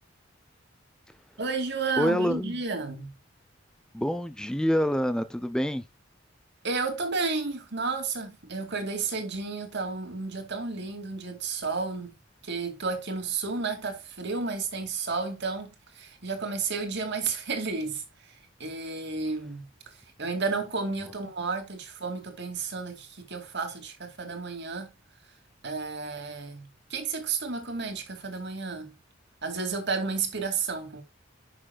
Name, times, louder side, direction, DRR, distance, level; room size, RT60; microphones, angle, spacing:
voice 1, 1.4-3.1 6.6-12.1 12.4-24.9 25.6-28.9 29.4-31.0, right 4 dB, 60° right, 2.4 m, -32 dB
voice 2, 2.0-2.6 3.9-5.8, equal, 5° left, 0.5 m, -26 dB
11.0 x 6.2 x 2.3 m
head